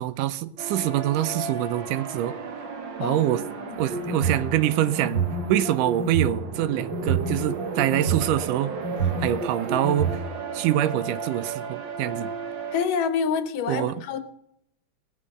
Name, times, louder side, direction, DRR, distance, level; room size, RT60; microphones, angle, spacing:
voice 1, 0.0-2.4 3.0-3.4 3.8-5.2 5.5-8.7 9.2-10.1 10.5-12.3 13.7-13.9, right 13 dB, 85° right, 2.3 m, -25 dB
sound 1, 0.6-12.9, right 5 dB, 55° right, 1.3 m, -35 dB
voice 2, 3.0-3.8 12.7-14.2, left 6 dB, 90° left, 2.7 m, -28 dB
sound 2, 3.8-4.5 5.0-6.4 6.9-8.2 8.8-10.1, right 4 dB, 35° right, 3.5 m, -27 dB
19.0 x 7.5 x 6.5 m
omnidirectional pair, 3.6 m